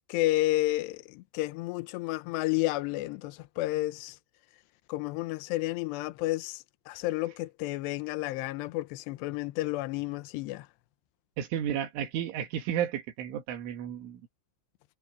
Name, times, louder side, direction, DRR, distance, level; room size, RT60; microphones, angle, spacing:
voice 1, 0.1-4.2 4.9-10.7, left 18 dB, 85° left, 2.4 m, -31 dB
voice 2, 11.4-14.2, right 10 dB, 70° right, 4.4 m, -32 dB
omnidirectional pair, 5.9 m